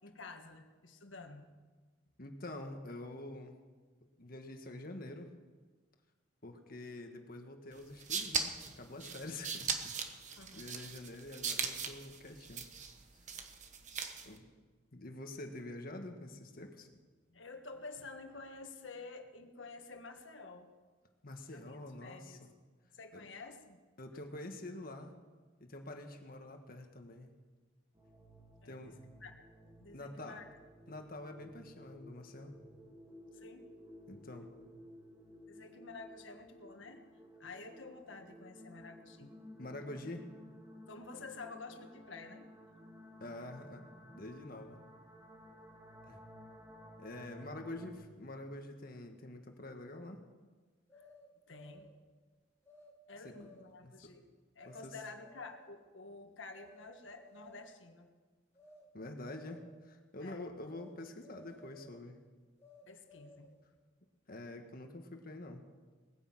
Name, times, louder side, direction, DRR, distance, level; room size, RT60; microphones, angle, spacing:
voice 1, 0.0-1.5 10.4-10.7 17.3-20.7 21.5-22.4 22.9-23.8 28.6-28.9 29.2-29.4 29.8-30.4 33.3-33.6 35.5-37.0 37.4-39.3 40.9-42.5 50.9-51.0 51.5-51.9 53.1-54.3 54.5-58.1 60.2-60.5 62.9-63.5, left 3 dB, 75° left, 6 dB, 1.7 m, -50 dB
voice 2, 2.2-3.6 4.2-5.3 6.4-10.0 10.5-12.6 14.2-14.5 14.9-16.9 21.2-22.5 23.1-23.2 24.0-25.1 25.6-27.3 28.6-29.0 29.9-30.4 30.9-32.5 34.1-34.5 39.6-40.3 43.2-43.8 44.1-44.8 46.1-46.2 47.0-50.2 53.2-53.3 53.8-54.1 54.6-54.9 58.9-62.2 64.3-65.6, left 1 dB, 50° left, 5 dB, 1.5 m, -46 dB
sound 1, 7.8-14.4, right 6 dB, 40° right, 1.2 m, -39 dB
sound 2, 27.9-47.9, equal, 20° right, 2.1 m, -55 dB
sound 3, 50.9-52.0 52.7-52.9 53.2-53.8 54.6-54.9 55.2-55.8 56.5-56.9 57.2-57.8 58.5-58.9 59.2-59.8 60.7-61.0 61.2-62.0 62.6-63.6, left 2 dB, 15° left, 2.7 m, -58 dB
19.5 x 10.0 x 7.5 m, 1.4 s
head